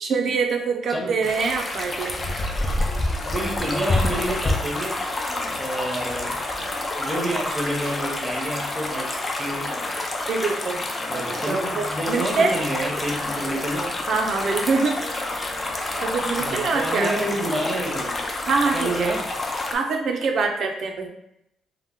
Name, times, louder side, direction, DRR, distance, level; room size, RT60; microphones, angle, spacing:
voice 1, 0.0-2.4 10.2-10.8 11.1-12.6 14.1-15.0 16.0-17.1 18.5-19.1 19.7-21.1, right 4 dB, 65° right, 3 dB, 0.4 m, -24 dB
sound 1, 1.2-19.7, left 2 dB, 25° left, 0.5 m, -28 dB
sound 2, 2.5-3.4 3.7-4.4 4.7-5.6 6.1-8.1 8.6-10.0 10.6-11.5 11.9-12.6 13.1-13.7 14.2-16.4, left 1 dB, 75° left, 0.9 m, -44 dB
voice 2, 3.2-5.0 5.6-9.1 9.4-9.7 11.1-14.0 16.4-18.1 18.7-19.3, right 1 dB, 15° right, 0 dB, 0.8 m, -29 dB
2.7 x 2.0 x 3.5 m, 0.80 s
cardioid pair, 90°, 0 cm